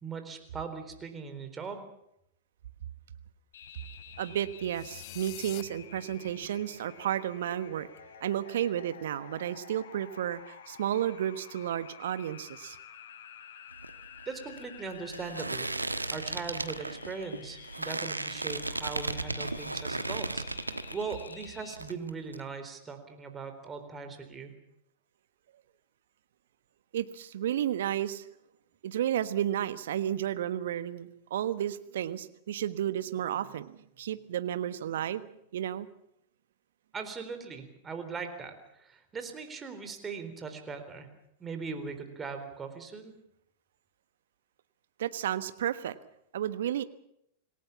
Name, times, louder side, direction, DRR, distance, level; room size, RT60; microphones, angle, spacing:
voice 1, 0.0-1.9 14.3-15.7 16.1-24.5 36.9-41.1 41.4-43.1, right 5 dB, 20° right, 7 dB, 4.0 m, -40 dB
sound 1, 3.5-21.7, left 8 dB, 65° left, 6.9 m, -50 dB
voice 2, 4.2-7.9 8.2-12.8 26.9-28.3 28.8-35.3 35.5-35.9 45.0-45.9 46.3-46.8, right 11 dB, 60° right, 13 dB, 1.3 m, -32 dB
sound 2, 4.7-5.6, left 18 dB, 40° left, 0.8 m, -45 dB
sound 3, 13.7-21.5 21.7-22.4, right 2 dB, 85° right, 1.2 m, -36 dB
27.0 x 18.0 x 7.2 m, 0.77 s
figure-of-eight pair, 95°, 0 cm